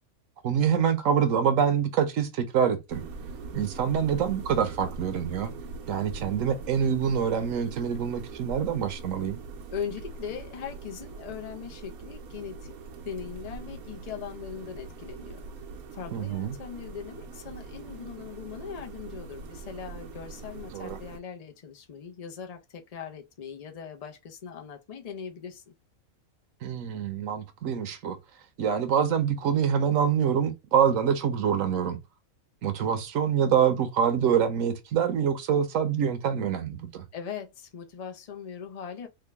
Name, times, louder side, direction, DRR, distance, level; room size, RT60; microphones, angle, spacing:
voice 1, 0.4-3.0 3.5-5.5 5.9-9.4 16.1-16.5 20.7-21.0 26.6-28.2 28.6-32.0 32.6-37.0, right 8 dB, 70° right, 1.0 m, -25 dB
sound 1, 2.9-21.2, right 4 dB, 90° right, 1.2 m, -42 dB
voice 2, 9.7-12.7 13.0-15.4 15.9-25.7 37.1-39.1, left 7 dB, 90° left, 0.3 m, -40 dB
3.7 x 2.1 x 3.3 m
omnidirectional pair, 1.5 m